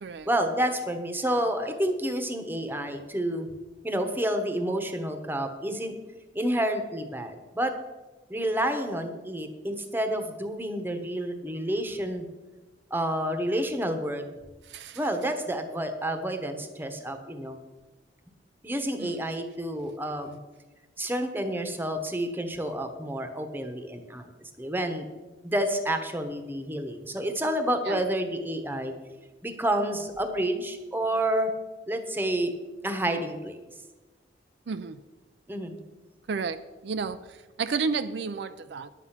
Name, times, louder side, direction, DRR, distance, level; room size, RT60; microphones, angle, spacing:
voice 1, 0.3-3.5 3.8-5.9 6.3-7.7 8.3-12.3 12.9-14.2 15.0-17.6 18.6-20.4 21.0-24.3 24.6-25.1 25.4-28.9 29.4-31.5 31.9-32.5 32.8-33.6 35.5-35.8, right 1 dB, 10° right, 7 dB, 1.1 m, -29 dB
voice 2, 14.7-15.0 19.0-19.2 27.9-28.0 34.7-35.0 36.3-38.9, right 5 dB, 65° right, 11 dB, 0.4 m, -32 dB
11.0 x 8.2 x 5.9 m, 1.2 s
head